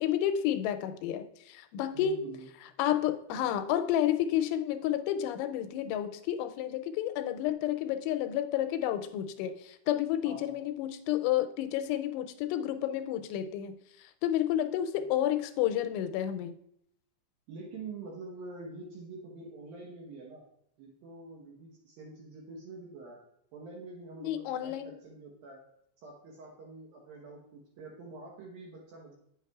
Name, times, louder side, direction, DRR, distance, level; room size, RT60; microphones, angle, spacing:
voice 1, 0.0-2.3 2.8-16.5 24.2-25.0, left 11 dB, 90° left, 9 dB, 3.0 m, -30 dB
voice 2, 1.9-2.5 10.2-10.6 15.0-15.1 17.5-20.5 20.8-23.2 23.5-25.6 26.0-29.1, right 3 dB, 70° right, -1 dB, 2.3 m, -46 dB
9.2 x 8.0 x 2.3 m, 0.74 s
omnidirectional pair, 5.4 m